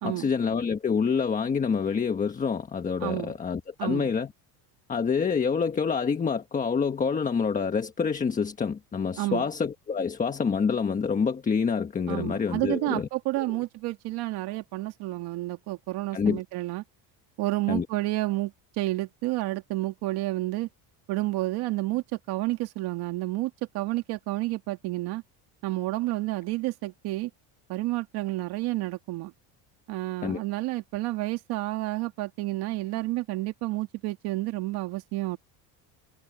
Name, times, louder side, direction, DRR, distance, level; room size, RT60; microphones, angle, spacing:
voice 1, 0.0-4.3 4.9-13.1 13.4-13.5 16.1-16.4 17.7-17.9 30.2-30.4, left 6 dB, 20° left, 1.3 m, -27 dB
voice 2, 3.0-3.3 3.8-4.1 9.2-9.5 12.1-16.8 17.4-20.7 21.1-25.2 25.6-27.3 27.7-29.3 29.9-35.4, right 18 dB, 65° right, 2.2 m, -30 dB
cardioid pair, 160°, 43 cm